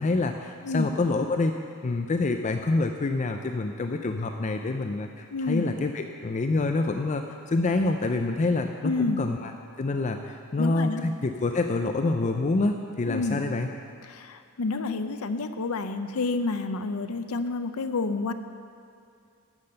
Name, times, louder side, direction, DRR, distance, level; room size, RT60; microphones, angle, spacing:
voice 1, 0.0-1.5 1.8-9.5 9.8-13.7, left 3 dB, 35° left, 5 dB, 0.4 m, -27 dB
voice 2, 5.3-5.7 8.8-9.2 10.6-11.0 13.1-13.4 14.1-18.3, left 3 dB, 80° left, 9 dB, 0.6 m, -29 dB
10.5 x 7.5 x 6.6 m, 2.4 s
head